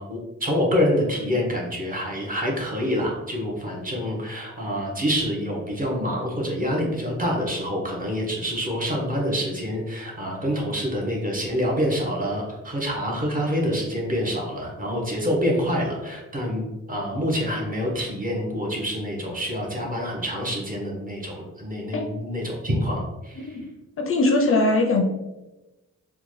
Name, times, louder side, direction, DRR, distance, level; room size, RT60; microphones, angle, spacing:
voice 1, 0.0-23.6, equal, 30° right, -2 dB, 0.8 m, -26 dB
voice 2, 24.0-25.0, left 2 dB, 45° left, 2 dB, 0.4 m, -20 dB
3.7 x 2.1 x 3.1 m, 1.0 s
wide cardioid pair, 140°, 30 cm